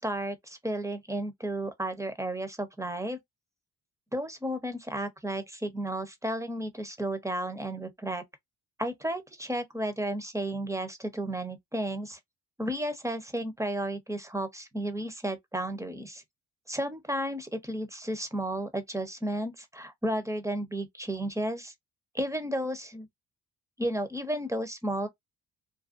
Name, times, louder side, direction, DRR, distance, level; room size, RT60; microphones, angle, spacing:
voice 1, 0.0-3.2 4.1-8.2 8.8-12.2 12.6-16.2 16.7-21.7 22.1-23.1 23.8-25.1, right 1 dB, 5° right, 0.7 m, -33 dB
2.6 x 2.2 x 2.5 m
hypercardioid pair, 50°, 45 cm